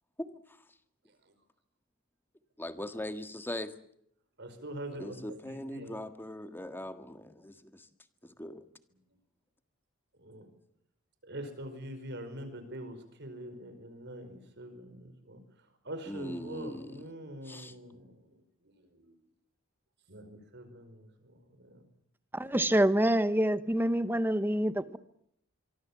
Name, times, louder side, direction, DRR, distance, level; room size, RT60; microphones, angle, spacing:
voice 1, 0.2-0.6 2.6-3.7 5.0-7.9 8.2-8.7 16.1-17.1 17.4-17.8, left 1 dB, 10° left, 1.7 m, -41 dB
voice 2, 4.4-6.0 10.2-10.5 11.2-15.4 15.8-18.3 18.6-19.2 20.1-21.8, right 1 dB, 55° right, 5.1 m, -44 dB
voice 3, 22.3-25.0, right 1 dB, 10° right, 1.0 m, -26 dB
24.5 x 24.5 x 7.4 m
head